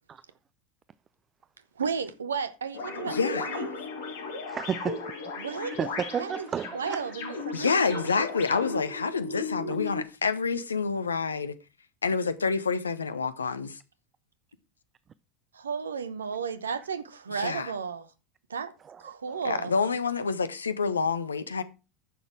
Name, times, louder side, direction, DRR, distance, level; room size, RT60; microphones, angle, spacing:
voice 1, 1.8-3.7 5.4-5.8 6.2-6.5 6.7-8.1 15.5-18.0 18.5-18.7 19.0-19.7, right 6 dB, 75° right, 1.0 m, -33 dB
sound 1, 2.7-10.0, left 3 dB, 60° left, 2.6 m, -36 dB
voice 2, 3.1-3.5 7.5-11.5 12.0-13.8 17.3-17.7 19.4-21.6, left 5 dB, 80° left, 0.8 m, -28 dB
voice 3, 4.5-5.1 5.8-7.0 18.9-19.0 19.3-19.4, right 7 dB, 30° right, 0.4 m, -32 dB
10.0 x 6.6 x 4.7 m
figure-of-eight pair, 75°, 0 cm